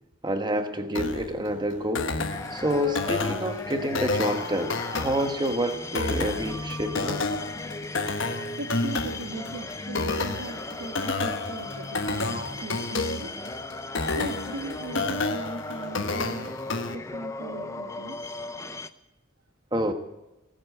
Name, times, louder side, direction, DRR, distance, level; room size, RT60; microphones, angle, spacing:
voice 1, 0.2-2.1 2.5-7.3 19.7-19.9, equal, 20° right, 1.2 m, -28 dB
sound 1, 0.9-16.9, left 3 dB, 60° left, 1.2 m, -31 dB
sound 2, 2.3-18.9, left 2 dB, 15° left, 0.5 m, -37 dB
voice 2, 8.6-13.3 14.1-16.5 16.9-18.3, right 2 dB, 80° right, 1.5 m, -38 dB
19.0 x 8.0 x 9.4 m
head